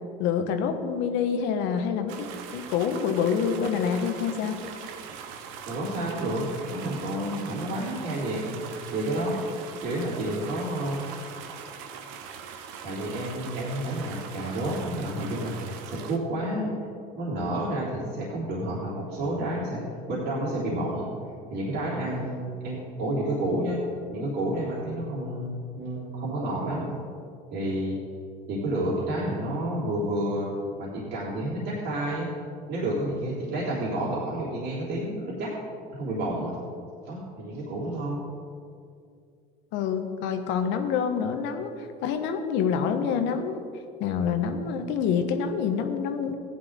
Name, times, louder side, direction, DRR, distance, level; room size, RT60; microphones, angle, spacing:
voice 1, 0.2-2.3 2.5-4.6 39.7-43.7 44.0-46.3, left 7 dB, 70° left, 7 dB, 1.3 m, -27 dB
sound 1, 2.1-16.2, right 7 dB, 75° right, 1.1 m, -41 dB
voice 2, 5.7-9.4 9.8-11.0 12.8-15.5 15.8-16.7 17.2-21.1 21.5-23.8 24.1-26.9 27.5-28.0 28.5-30.5 30.8-32.3 32.7-35.5 35.9-36.6 37.1-38.2, right 1 dB, 60° right, -7 dB, 3.4 m, -30 dB
15.0 x 10.5 x 3.7 m, 2.4 s
supercardioid pair, 95°, 20 cm